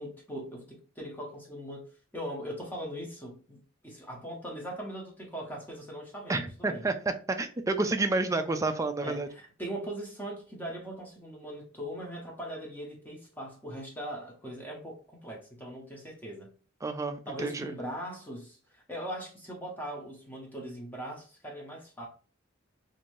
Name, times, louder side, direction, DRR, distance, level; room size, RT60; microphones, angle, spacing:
voice 1, 0.0-1.9 2.1-6.9 9.0-16.5 17.3-22.1, equal, 10° left, 0.7 m, -40 dB
voice 2, 6.3-6.9 7.3-9.3 16.8-17.7, right 3 dB, 15° right, 0.3 m, -29 dB
2.6 x 2.6 x 3.0 m
head